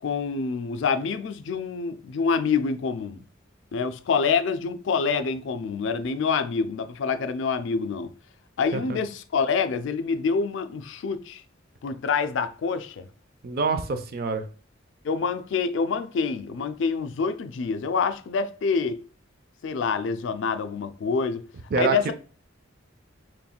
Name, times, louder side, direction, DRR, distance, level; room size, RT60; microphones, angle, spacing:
voice 1, 0.0-3.2 3.7-8.1 8.6-11.4 11.8-13.1 15.0-19.0 19.6-21.5 21.7-22.1, left 5 dB, 65° left, 0.4 m, -26 dB
voice 2, 13.4-14.4 21.7-22.1, right 4 dB, 50° right, 0.5 m, -26 dB
4.2 x 3.1 x 2.2 m
head